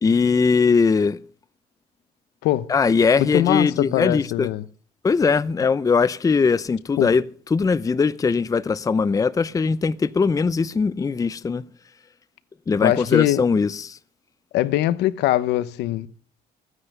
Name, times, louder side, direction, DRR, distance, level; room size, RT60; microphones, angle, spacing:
voice 1, 0.0-1.2 2.7-4.5 5.0-7.2 7.5-11.6 12.7-14.0, left 5 dB, 20° left, 0.6 m, -20 dB
voice 2, 3.2-4.6 7.0-7.1 12.8-13.4 14.5-16.1, left 14 dB, 85° left, 0.9 m, -22 dB
15.5 x 9.7 x 6.7 m
cardioid pair, 110°, 17 cm